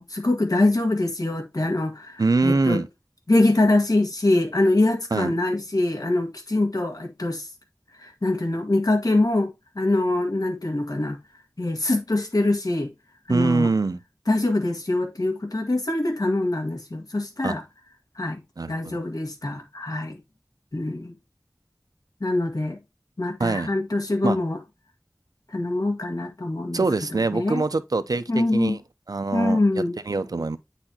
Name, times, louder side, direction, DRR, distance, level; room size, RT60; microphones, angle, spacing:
voice 1, 0.0-2.8 3.3-7.5 8.0-11.2 11.6-12.9 13.3-13.7 14.3-17.6 18.1-18.4 18.7-20.2 20.7-21.1 22.2-22.8 23.2-24.6 25.5-26.8 27.1-27.6 28.3-28.8 29.3-30.0, left 2 dB, 75° left, 1.6 m, -24 dB
voice 2, 2.2-2.9 5.1-5.3 13.3-14.0 17.4-17.5 18.6-19.0 23.4-23.7 24.2-24.4 26.7-28.8 29.1-30.6, right 3 dB, 85° right, 0.5 m, -24 dB
8.8 x 4.2 x 2.8 m
wide cardioid pair, 45°, 6 cm